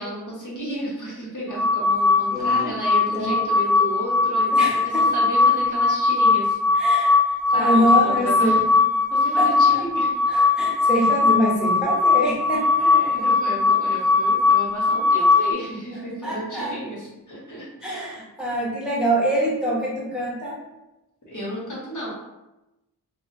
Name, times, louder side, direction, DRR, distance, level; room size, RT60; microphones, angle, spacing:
voice 1, 0.0-7.1 7.5-8.8 9.1-10.1 12.8-18.2 21.3-22.1, right 1 dB, 50° left, -5 dB, 1.1 m, -33 dB
sound 1, 1.5-15.5, left 4 dB, 55° right, 0.7 m, -20 dB
voice 2, 2.3-2.7 3.1-3.4 4.5-5.1 6.7-8.6 9.4-9.8 10.3-12.7 16.2-16.7 17.8-20.6, right 1 dB, ahead, -6 dB, 0.9 m, -25 dB
2.3 x 2.0 x 3.8 m, 0.97 s
cardioid pair, 55°, 38 cm